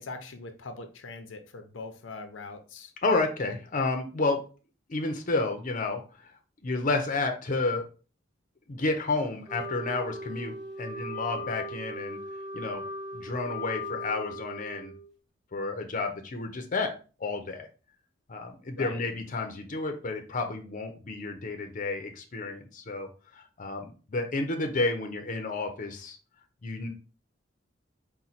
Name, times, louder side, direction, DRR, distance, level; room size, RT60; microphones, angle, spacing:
voice 1, 0.0-2.9 18.7-19.0, left 3 dB, 85° left, 7 dB, 0.6 m, -41 dB
voice 2, 3.0-4.4 4.9-6.0 6.6-7.8 8.7-12.2 12.5-12.8 13.1-14.9 15.5-16.9 17.2-17.7 18.3-23.1 23.3-26.2 26.6-26.9, left 3 dB, 45° left, 4 dB, 0.6 m, -31 dB
Wind instrument woodwind instrument, 9.5-15.1, left 1 dB, ahead, 1.3 m, -38 dB
4.3 x 2.2 x 4.0 m, 0.35 s
head